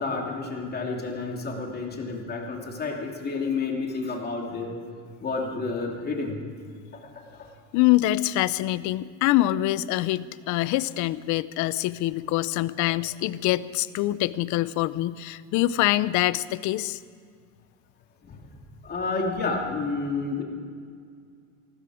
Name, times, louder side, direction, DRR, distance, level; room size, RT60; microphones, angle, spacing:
voice 1, 0.0-4.7 5.2-6.4 6.9-7.5 18.2-18.4 18.8-20.4, left 3 dB, 25° left, 1 dB, 2.8 m, -30 dB
voice 2, 7.7-17.0, left 16 dB, 55° left, 18 dB, 0.6 m, -25 dB
19.0 x 15.5 x 4.9 m, 2.1 s
cardioid pair, 135°, 36 cm